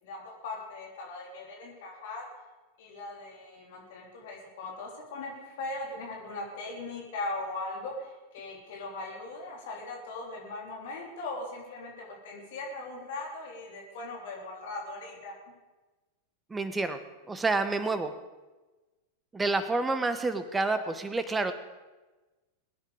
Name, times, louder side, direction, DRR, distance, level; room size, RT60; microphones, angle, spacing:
voice 1, 0.0-2.3 2.8-15.4, left 2 dB, 55° left, -1 dB, 3.6 m, -39 dB
voice 2, 16.5-17.0 17.3-18.1 19.3-21.5, right 3 dB, 15° right, 11 dB, 1.2 m, -28 dB
21.5 x 9.8 x 5.1 m, 1.2 s
figure-of-eight pair, 90°, 0 cm